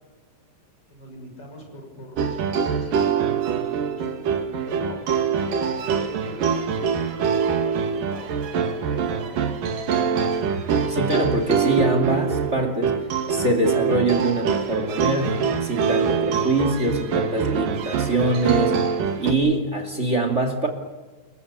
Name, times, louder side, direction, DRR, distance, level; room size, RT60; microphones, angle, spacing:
voice 1, 0.9-9.4, equal, 30° left, 3 dB, 7.2 m, -42 dB
sound 1, 2.2-19.3, right 6 dB, 85° right, 3.6 m, -24 dB
voice 2, 10.9-13.0 13.3-18.8 19.2-20.7, right 2 dB, 20° right, 6 dB, 2.7 m, -23 dB
28.5 x 23.0 x 6.9 m, 1.3 s
omnidirectional pair, 3.7 m